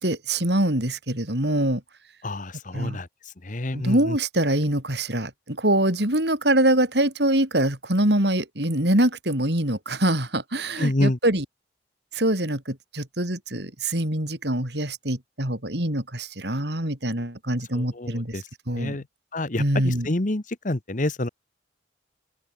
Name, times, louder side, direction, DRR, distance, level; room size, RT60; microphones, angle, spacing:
voice 1, 0.0-1.8 2.7-3.0 3.7-11.5 12.1-19.0 19.6-20.1, right 1 dB, 60° right, 5.3 m, -24 dB
voice 2, 2.2-3.1 3.4-4.2 10.8-11.2 17.7-18.4 18.8-19.0 19.3-21.3, left 1 dB, 45° left, 1.3 m, -27 dB
open air
head